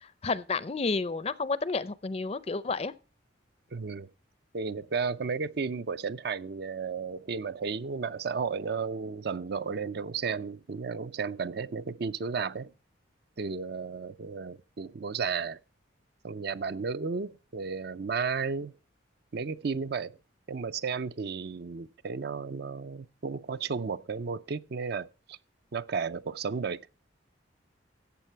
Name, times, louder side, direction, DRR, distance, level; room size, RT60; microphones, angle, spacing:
voice 1, 0.0-2.9, left 4 dB, 30° left, 0.5 m, -31 dB
voice 2, 3.7-4.1 4.5-12.7 13.4-15.6 16.2-18.7 19.3-20.2 20.5-25.4 25.7-26.9, right 5 dB, 55° right, 0.5 m, -33 dB
14.0 x 8.2 x 4.5 m
head